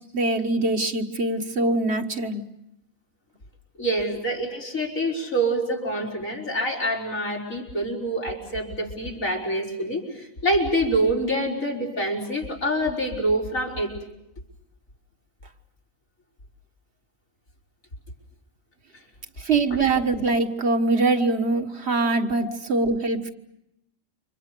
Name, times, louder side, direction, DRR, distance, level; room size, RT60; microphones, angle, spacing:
voice 1, 0.1-2.4 19.4-23.3, right 3 dB, 55° right, 6 dB, 1.8 m, -23 dB
voice 2, 3.8-13.9 22.4-22.5, right 1 dB, 90° left, -1 dB, 5.6 m, -26 dB
29.5 x 26.0 x 6.8 m, 0.83 s
omnidirectional pair, 1.4 m